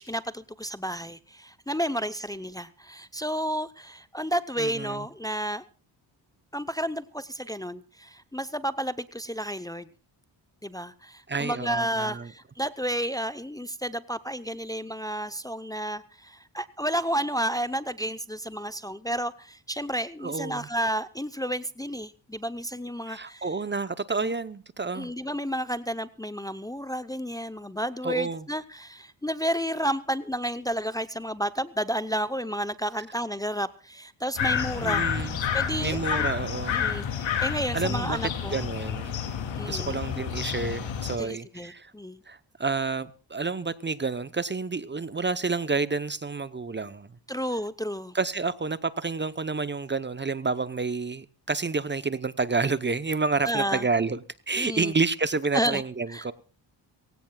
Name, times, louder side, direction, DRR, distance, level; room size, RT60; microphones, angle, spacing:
voice 1, 0.0-5.6 6.5-9.9 10.6-23.5 24.2-24.3 24.9-35.2 35.5-36.3 36.7-38.6 39.6-40.0 41.2-42.2 47.3-48.1 53.4-53.8 54.6-54.9 55.5-55.8 56.1-56.3, equal, 10° left, 0.7 m, -31 dB
voice 2, 4.6-5.1 11.3-12.3 20.2-20.7 23.1-25.1 28.0-28.5 32.9-33.1 34.8-35.4 35.8-36.8 37.7-39.2 39.6-41.9 42.3-47.1 48.1-56.3, right 4 dB, 25° right, 0.8 m, -29 dB
sound 1, 34.4-41.2, left 7 dB, 80° left, 2.7 m, -29 dB
23.5 x 16.5 x 2.3 m
cardioid pair, 90°, 45 cm